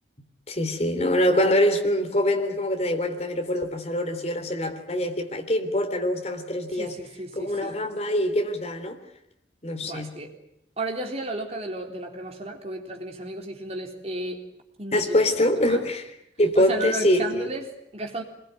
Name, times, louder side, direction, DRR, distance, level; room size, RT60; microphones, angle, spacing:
voice 1, 0.5-6.9 7.3-9.0 9.6-10.2 14.9-17.5, left 1 dB, 35° left, 5 dB, 3.5 m, -24 dB
voice 2, 6.7-7.8 9.8-10.3 10.8-14.5 14.8-15.2 15.7-15.8 16.6-18.2, right 2 dB, 35° right, 2 dB, 3.8 m, -33 dB
25.5 x 22.0 x 9.5 m, 0.76 s
head